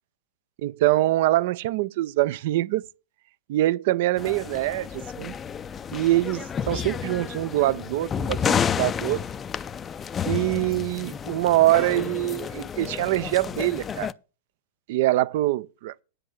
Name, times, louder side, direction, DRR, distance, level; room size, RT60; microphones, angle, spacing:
voice 1, 0.6-2.8 3.5-5.3 5.9-9.2 10.3-14.1 14.9-15.9, right 16 dB, 55° right, 0.4 m, -24 dB
sound 1, 4.2-14.1, left 7 dB, 20° left, 0.4 m, -31 dB
9.9 x 5.3 x 6.8 m
figure-of-eight pair, 95°, 0 cm